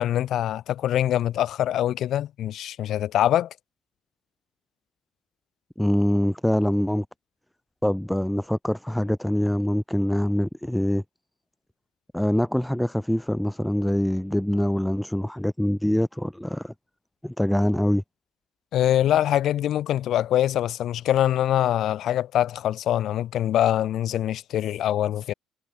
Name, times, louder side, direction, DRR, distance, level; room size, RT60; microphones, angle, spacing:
voice 1, 0.0-3.5 18.7-25.3, left 12 dB, 55° left, 0.9 m, -24 dB
voice 2, 5.8-7.1 7.8-11.0 12.1-16.7 17.2-18.0, equal, 5° left, 2.1 m, -24 dB
figure-of-eight pair, 50°, 0 cm